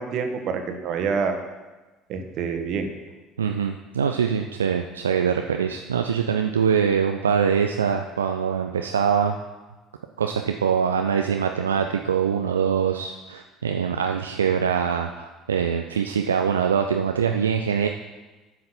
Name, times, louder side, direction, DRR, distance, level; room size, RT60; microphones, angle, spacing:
voice 1, 0.0-1.4 2.1-2.9, right 5 dB, 50° right, 6 dB, 1.3 m, -27 dB
voice 2, 3.4-9.4 10.2-17.9, right 7 dB, 75° right, 5 dB, 0.4 m, -23 dB
9.4 x 5.8 x 6.8 m, 1.2 s
figure-of-eight pair, 60°, 0 cm